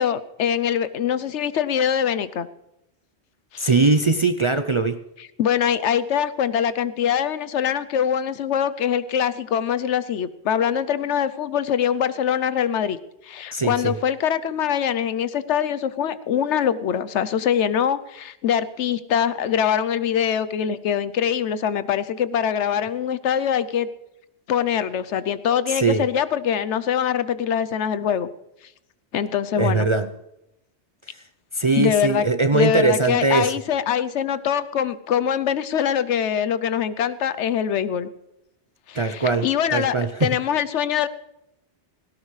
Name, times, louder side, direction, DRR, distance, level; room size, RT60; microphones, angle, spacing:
voice 1, 0.0-2.5 3.5-3.7 5.4-13.0 13.2-23.9 24.5-28.3 29.1-29.9 31.8-32.2 32.5-38.1 38.9-40.0 40.2-41.1, left 8 dB, 80° left, 14 dB, 1.0 m, -23 dB
voice 2, 3.6-5.0 13.5-13.9 25.7-26.1 29.6-30.1 31.1-31.2 31.5-33.5 38.9-40.3, right 3 dB, 40° right, 9 dB, 0.5 m, -21 dB
17.5 x 16.5 x 3.2 m, 0.86 s
omnidirectional pair, 1.2 m